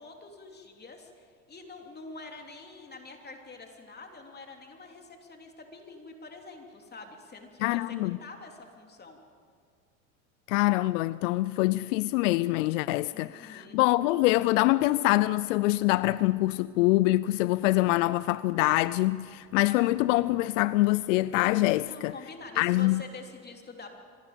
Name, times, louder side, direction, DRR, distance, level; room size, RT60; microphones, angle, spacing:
voice 1, 0.0-9.2 13.1-13.8 21.8-23.9, left 3 dB, 25° left, 3.3 m, -46 dB
voice 2, 7.6-8.2 10.5-22.1 22.6-23.0, left 18 dB, 75° left, 0.5 m, -25 dB
25.5 x 20.0 x 5.2 m
hypercardioid pair, 85°, 39 cm